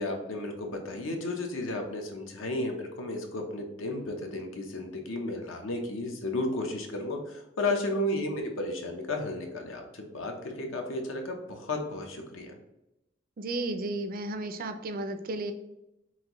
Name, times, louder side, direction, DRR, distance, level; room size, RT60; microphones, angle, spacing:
voice 1, 0.0-12.6, left 2 dB, 70° left, 3 dB, 0.8 m, -33 dB
voice 2, 13.4-15.5, right 2 dB, 45° right, 7 dB, 0.4 m, -33 dB
5.8 x 2.6 x 3.0 m, 0.90 s
head